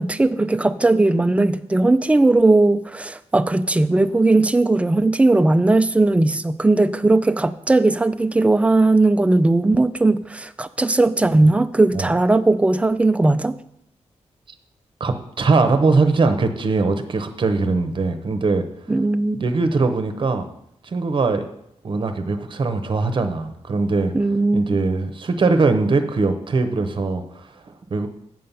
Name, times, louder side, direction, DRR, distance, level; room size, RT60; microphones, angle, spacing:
voice 1, 0.0-13.6 18.9-19.4 24.1-24.8, right 2 dB, 10° right, 12 dB, 0.4 m, -18 dB
voice 2, 15.0-18.6 19.4-20.5 20.8-21.5 21.8-24.1 24.5-28.1, right 3 dB, 45° right, 8 dB, 0.8 m, -21 dB
7.6 x 7.4 x 5.5 m, 0.78 s
wide cardioid pair, 155°, 12 cm